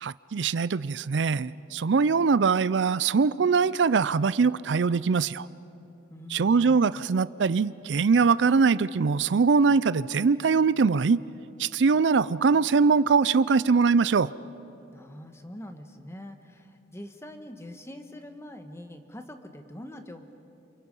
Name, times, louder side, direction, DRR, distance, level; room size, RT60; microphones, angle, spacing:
voice 1, 0.0-5.5 6.3-11.2 11.6-14.3, right 5 dB, 90° right, 18 dB, 0.5 m, -22 dB
voice 2, 6.1-6.8 14.9-20.3, left 1 dB, 15° left, 6 dB, 1.4 m, -44 dB
30.0 x 27.5 x 5.5 m, 2.8 s
head